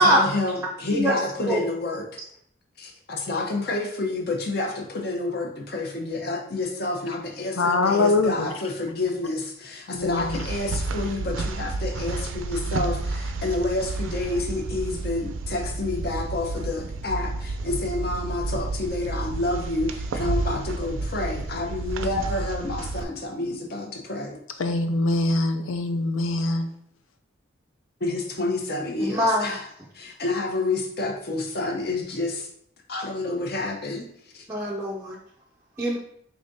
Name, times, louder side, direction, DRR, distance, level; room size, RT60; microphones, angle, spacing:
voice 1, 0.0-2.2 2.8-24.4 28.0-29.7 29.9-32.5 32.9-34.5, left 2 dB, 50° left, 2 dB, 0.7 m, -29 dB
voice 2, 7.6-8.5 9.9-10.4 24.6-26.7, left 2 dB, 85° left, 6 dB, 0.6 m, -23 dB
sound 1, 10.0-23.0, right 3 dB, 80° right, 0.4 m, -31 dB
voice 3, 29.0-29.5 34.5-35.2 35.8-36.0, right 1 dB, 10° right, -4 dB, 0.4 m, -22 dB
4.9 x 3.4 x 2.7 m, 0.70 s
head